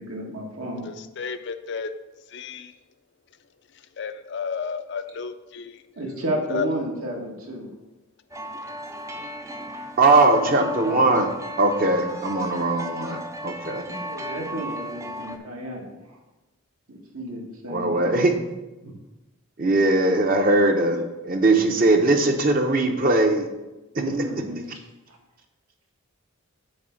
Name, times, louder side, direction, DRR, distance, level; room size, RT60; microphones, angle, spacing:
voice 1, 0.0-0.9 6.0-7.7 10.1-11.2 13.9-16.2 16.9-18.2 18.8-18.9 23.9-24.7 25.1-25.2, right 1 dB, 75° right, -1 dB, 1.8 m, -32 dB
voice 2, 0.8-1.9 2.3-2.7 4.0-5.8 6.5-6.7, left 6 dB, 50° left, 10 dB, 0.5 m, -32 dB
sound 1, 8.3-15.4, equal, 15° right, 0.4 m, -35 dB
voice 3, 10.0-11.3 11.6-13.9 17.7-18.3 19.6-23.5, right 2 dB, 40° right, 4 dB, 0.8 m, -20 dB
8.5 x 3.5 x 6.4 m, 1.0 s
head